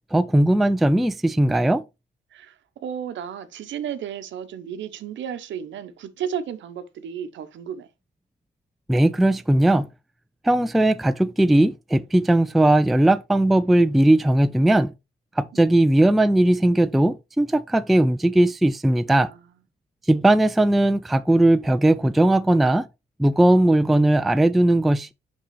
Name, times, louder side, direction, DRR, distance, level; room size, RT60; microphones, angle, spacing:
voice 1, 0.1-1.8 8.9-9.9 10.4-14.9 15.4-19.3 20.1-22.9 23.2-25.1, right 1 dB, ahead, 0.3 m, -18 dB
voice 2, 2.3-7.9 15.5-15.7 19.3-19.4 23.5-24.0, right 8 dB, 70° right, 0.8 m, -34 dB
6.6 x 5.4 x 3.1 m
cardioid pair, 90°, 20 cm